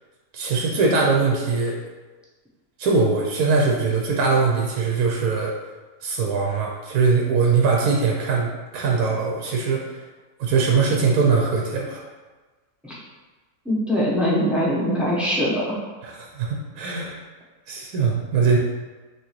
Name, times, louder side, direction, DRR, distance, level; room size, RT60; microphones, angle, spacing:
voice 1, 0.3-1.8 2.8-5.5 6.0-10.0 10.4-12.0 16.0-17.2 17.7-18.6, right 4 dB, 75° right, -1 dB, 1.1 m, -21 dB
voice 2, 13.6-15.8, equal, ahead, -7 dB, 0.8 m, -22 dB
5.7 x 2.7 x 3.1 m, 1.3 s
omnidirectional pair, 1.6 m